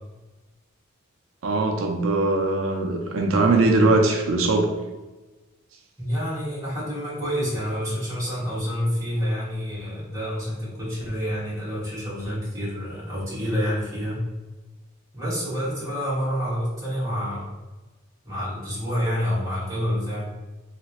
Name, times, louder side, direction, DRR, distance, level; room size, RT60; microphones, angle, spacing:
voice 1, 1.4-4.7, right 2 dB, 90° right, 2 dB, 0.4 m, -21 dB
voice 2, 6.0-14.2 15.1-17.5 18.2-20.3, equal, 15° right, -10 dB, 1.5 m, -28 dB
3.1 x 2.5 x 2.9 m, 1.2 s
head